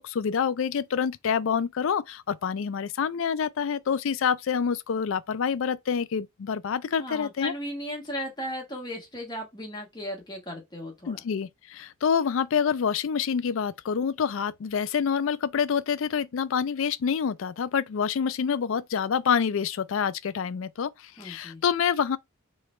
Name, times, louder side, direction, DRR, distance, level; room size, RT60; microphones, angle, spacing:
voice 1, 0.0-7.5 11.1-22.2, left 7 dB, 70° left, 0.4 m, -27 dB
voice 2, 7.0-11.2 21.2-21.6, equal, 20° left, 1.3 m, -36 dB
3.8 x 3.2 x 4.3 m
head